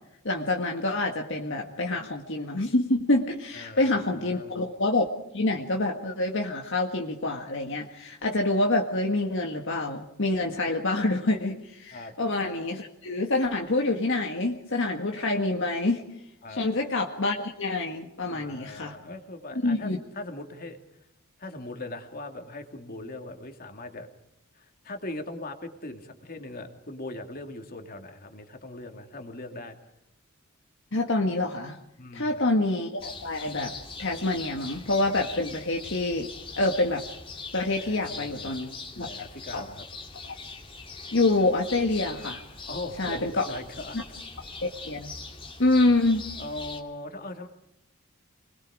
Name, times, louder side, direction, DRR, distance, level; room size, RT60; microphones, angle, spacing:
voice 1, 0.3-5.1 5.3-16.0 16.5-19.0 19.6-20.0 30.9-31.8 32.1-37.0 37.5-38.7 39.0-39.1 39.5-39.6 41.1-42.4 43.0-43.5 43.9-44.0 44.6-45.1 45.6-46.2, left 2 dB, 60° left, 2 dB, 1.7 m, -26 dB
voice 2, 3.5-3.9 4.2-4.5 11.9-12.1 16.4-16.6 18.3-20.8 21.4-24.1 24.6-29.8 32.0-32.4 37.8-39.9 42.6-44.0 46.4-47.5, left 2 dB, 45° left, 5 dB, 2.7 m, -40 dB
sound 1, 33.0-46.8, left 4 dB, 25° left, 2.5 m, -42 dB
25.5 x 21.0 x 5.0 m, 0.87 s
head